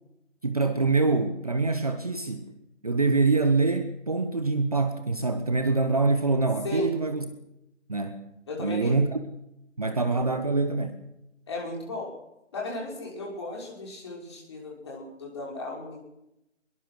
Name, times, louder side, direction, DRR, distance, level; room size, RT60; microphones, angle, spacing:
voice 1, 0.4-2.5 2.8-7.3 7.9-8.3 8.6-9.2 9.8-11.0, right 3 dB, 30° right, 8 dB, 1.3 m, -25 dB
voice 2, 8.5-9.0 11.5-12.1 12.5-16.0, left 1 dB, 20° left, -2 dB, 6.0 m, -35 dB
23.5 x 22.5 x 6.5 m, 0.84 s
figure-of-eight pair, 165°, 38 cm